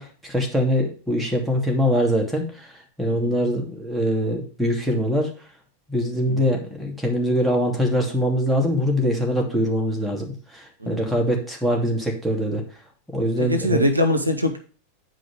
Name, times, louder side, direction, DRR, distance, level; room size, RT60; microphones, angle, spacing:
voice 1, 0.0-2.7 3.0-5.3 5.9-12.6 13.1-13.8, equal, 5° right, 0 dB, 2.8 m, -23 dB
voice 2, 13.4-14.6, left 1 dB, 80° right, 7 dB, 1.1 m, -23 dB
9.3 x 5.2 x 4.9 m, 0.38 s
figure-of-eight pair, 90°, 0 cm